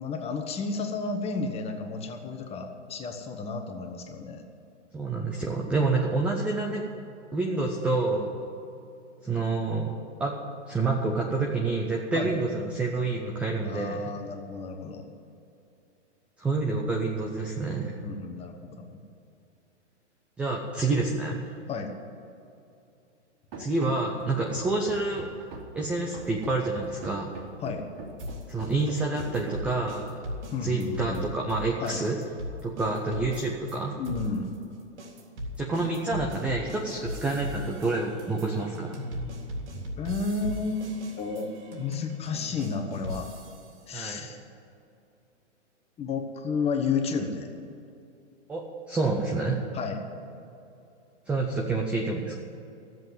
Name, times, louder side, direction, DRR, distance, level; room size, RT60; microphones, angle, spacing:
voice 1, 0.0-4.5 12.1-12.3 13.6-15.1 18.0-19.0 21.7-21.9 27.6-27.8 30.5-31.3 31.8-32.0 34.0-34.5 40.0-40.9 41.2-43.3 43.9-44.4 46.0-47.5 49.7-50.0, left 4 dB, 15° left, 4 dB, 1.3 m, -32 dB
voice 2, 4.9-6.8 7.3-8.3 9.2-10.3 10.7-14.0 16.4-17.9 20.4-21.5 23.6-25.3 25.7-27.3 28.5-30.2 30.6-32.2 32.6-34.0 35.6-38.9 43.9-44.3 48.5-49.6 51.3-52.4, right 3 dB, 5° right, 0 dB, 0.3 m, -28 dB
Run, 23.5-30.1, right 2 dB, 55° right, 2.5 m, -43 dB
sound 1, 28.2-33.8 34.0-43.8, equal, 70° right, 3.5 m, -38 dB
13.0 x 7.7 x 9.2 m, 2.7 s
hypercardioid pair, 140°, 35 cm